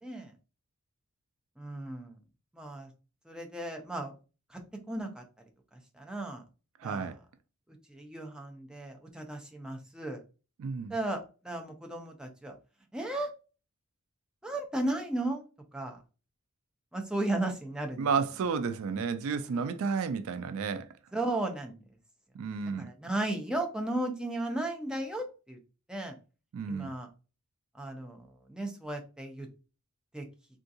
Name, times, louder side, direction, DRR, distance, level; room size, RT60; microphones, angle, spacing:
voice 1, 0.0-0.3 1.6-2.2 2.5-2.9 3.3-4.1 4.5-4.6 4.9-5.2 5.7-6.4 6.8-7.1 7.9-10.2 10.9-12.5 12.9-13.3 14.4-15.4 15.7-16.0 16.9-18.1 19.5-19.7 21.1-21.8 22.8-25.6 25.9-26.1 26.7-27.1 27.8-29.5 30.1-30.3, right 1 dB, 5° right, 0.5 m, -35 dB
voice 2, 6.8-7.2 10.6-10.9 18.0-20.9 22.3-22.9 26.5-26.9, right 5 dB, 65° right, 0.3 m, -32 dB
3.5 x 2.4 x 2.6 m
head